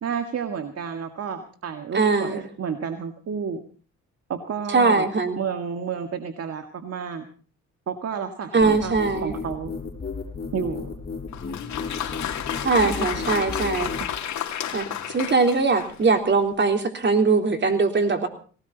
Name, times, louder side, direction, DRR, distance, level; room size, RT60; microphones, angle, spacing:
voice 1, 0.0-3.6 4.3-5.1 5.4-7.3 7.9-8.9 9.2-9.7 10.5-11.0 12.8-12.9, right 6 dB, 55° right, 6 dB, 1.9 m, -31 dB
voice 2, 1.9-2.4 4.7-5.4 8.5-9.4 12.6-13.9 14.7-18.3, right 4 dB, 35° right, 5 dB, 3.5 m, -21 dB
sound 1, 8.6-14.1, left 4 dB, 30° left, 6.4 m, -33 dB
Applause, 11.3-16.1, left 10 dB, 70° left, 2.7 m, -31 dB
19.0 x 18.0 x 4.0 m, 0.41 s
cardioid pair, 90°, 30 cm